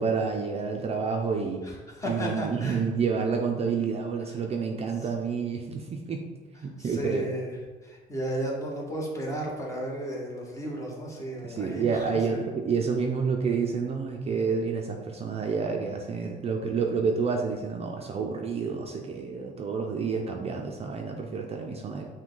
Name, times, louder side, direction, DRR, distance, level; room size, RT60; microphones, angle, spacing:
voice 1, 0.0-1.6 2.1-6.2 6.6-7.3 11.4-22.1, right 5 dB, 35° right, 2 dB, 0.5 m, -29 dB
voice 2, 1.6-2.8 4.3-4.4 5.0-5.1 6.6-12.4, right 1 dB, 20° left, -2 dB, 1.1 m, -34 dB
5.9 x 2.2 x 3.8 m, 1.4 s
cardioid pair, 110°, 17 cm